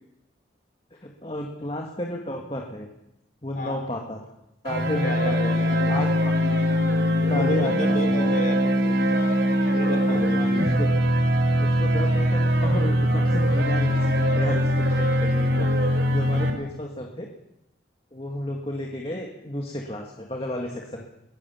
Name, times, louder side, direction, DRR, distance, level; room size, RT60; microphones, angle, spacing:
voice 1, 0.9-2.9 3.4-4.2 4.6-5.5 5.9-6.6 7.3-8.0 10.1-10.9 11.6-17.3 18.1-21.1, left 1 dB, 30° left, 0 dB, 1.8 m, -32 dB
sound 1, 4.6-16.5, equal, 75° right, 3.8 m, -22 dB
voice 2, 4.9-6.1 7.2-9.2 9.7-10.6, left 1 dB, 50° left, 3 dB, 5.0 m, -34 dB
21.0 x 17.0 x 7.2 m, 0.87 s
head